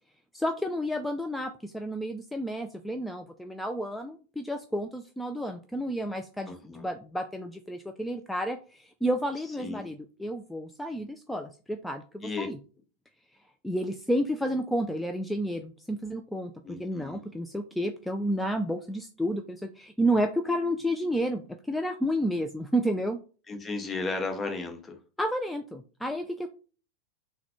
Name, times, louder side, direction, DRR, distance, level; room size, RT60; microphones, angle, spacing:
voice 1, 0.3-12.6 13.6-23.2 25.2-26.5, equal, 5° left, 0.3 m, -31 dB
voice 2, 6.5-6.9 9.6-9.9 12.2-12.5 16.6-17.2 23.5-25.0, left 3 dB, 20° left, 0.8 m, -34 dB
3.8 x 2.2 x 3.0 m
figure-of-eight pair, 95°, 0 cm